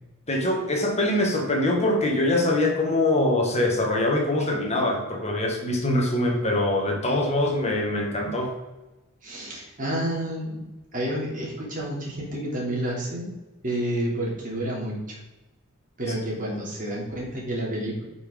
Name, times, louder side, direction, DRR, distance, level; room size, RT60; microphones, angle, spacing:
voice 1, 0.3-8.5, left 1 dB, 30° left, 1 dB, 1.6 m, -23 dB
voice 2, 9.2-10.7 10.9-13.3 13.6-15.2 16.0-18.0, right 1 dB, 40° right, -4 dB, 2.9 m, -29 dB
9.2 x 5.5 x 3.8 m, 1.1 s
head